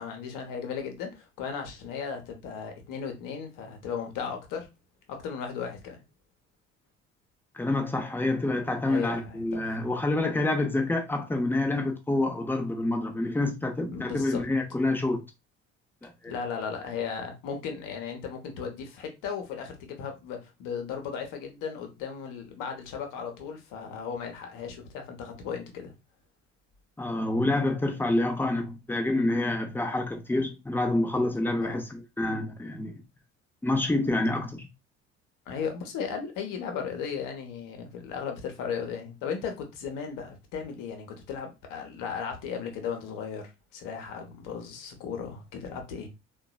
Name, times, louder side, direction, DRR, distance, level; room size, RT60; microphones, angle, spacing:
voice 1, 0.0-4.7 5.1-6.0 8.8-9.9 13.9-14.5 16.3-25.9 31.6-31.8 35.5-46.1, left 6 dB, 55° left, 1.0 m, -36 dB
voice 2, 7.5-15.2 16.0-16.3 27.0-33.0 33.6-34.7, left 2 dB, 5° left, 0.7 m, -27 dB
3.8 x 2.5 x 2.3 m
figure-of-eight pair, 55°, 39 cm